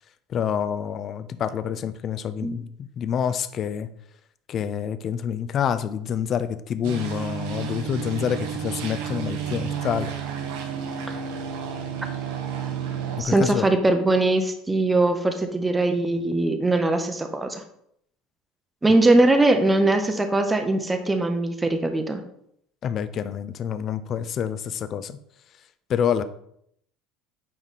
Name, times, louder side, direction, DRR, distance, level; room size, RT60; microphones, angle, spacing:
voice 1, 0.3-3.9 4.5-10.1 13.2-13.7 22.8-25.2 25.9-26.2, left 8 dB, 30° left, 12 dB, 0.4 m, -27 dB
sound 1, 6.8-13.2, right 8 dB, 90° right, 1.2 m, -31 dB
voice 2, 13.2-17.6 18.8-22.2, right 2 dB, 10° right, 6 dB, 0.6 m, -21 dB
9.0 x 3.2 x 4.1 m, 0.71 s
cardioid pair, 165°, 0 cm